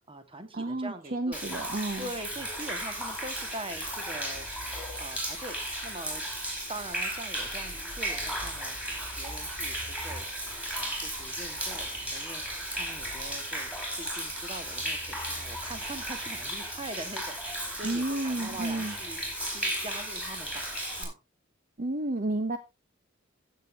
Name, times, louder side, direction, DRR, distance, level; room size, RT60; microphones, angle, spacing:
voice 1, 0.0-1.4 2.0-4.5 5.0-6.2 6.7-10.3 10.8-12.4 12.7-13.7 14.0-19.2 19.5-20.7 21.0-21.2, right 1 dB, 25° right, 9 dB, 1.6 m, -43 dB
voice 2, 0.5-2.1 17.8-18.9 21.8-22.6, right 2 dB, 45° right, 9 dB, 0.9 m, -31 dB
Human voice / Rain / Stream, 1.3-21.0, right 1 dB, 5° right, 4.7 m, -35 dB
15.0 x 7.0 x 3.4 m, 0.24 s
head